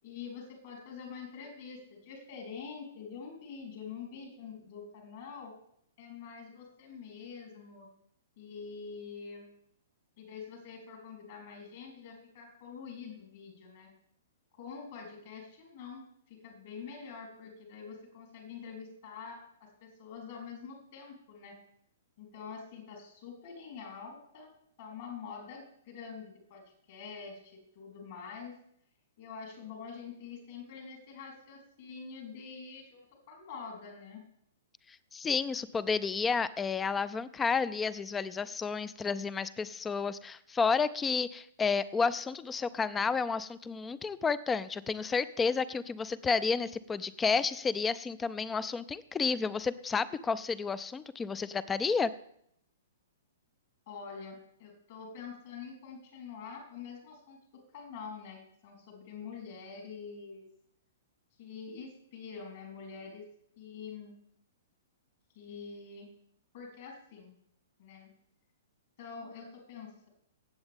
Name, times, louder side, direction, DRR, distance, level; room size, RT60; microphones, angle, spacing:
voice 1, 0.0-5.5 6.0-7.9 8.4-9.6 10.2-13.9 14.5-21.6 22.2-24.5 24.8-28.6 29.2-34.2 53.9-60.5 61.4-63.3 63.6-64.1 65.3-66.1 66.5-67.4 67.8-68.1 69.0-70.1, left 5 dB, 50° left, 1 dB, 3.9 m, -46 dB
voice 2, 35.1-52.1, left 5 dB, 15° left, 18 dB, 0.5 m, -31 dB
17.0 x 7.8 x 3.6 m, 0.70 s
figure-of-eight pair, 115°, 0 cm